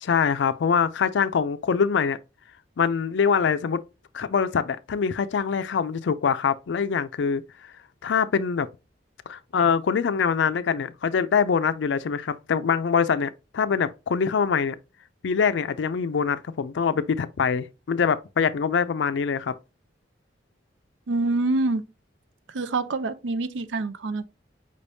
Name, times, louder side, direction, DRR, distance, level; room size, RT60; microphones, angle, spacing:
voice 1, 0.0-2.2 2.8-3.8 4.1-7.4 8.0-8.7 9.3-14.8 15.2-19.5, left 6 dB, 75° left, 0.4 m, -24 dB
voice 2, 21.1-21.8 22.5-24.2, right 2 dB, 85° right, 0.5 m, -26 dB
5.2 x 3.4 x 2.6 m
head